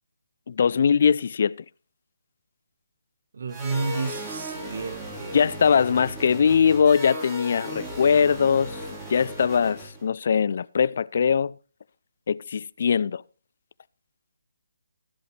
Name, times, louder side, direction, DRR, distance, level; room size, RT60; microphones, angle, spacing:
voice 1, 0.5-1.5 5.3-8.8 9.1-11.6 12.3-13.2, left 6 dB, 50° left, 0.5 m, -21 dB
voice 2, 3.3-5.4, right 4 dB, 60° right, 1.4 m, -31 dB
sound 1, 3.5-10.0, equal, 10° right, 4.1 m, -37 dB
13.5 x 13.0 x 3.3 m
figure-of-eight pair, 150°, 0 cm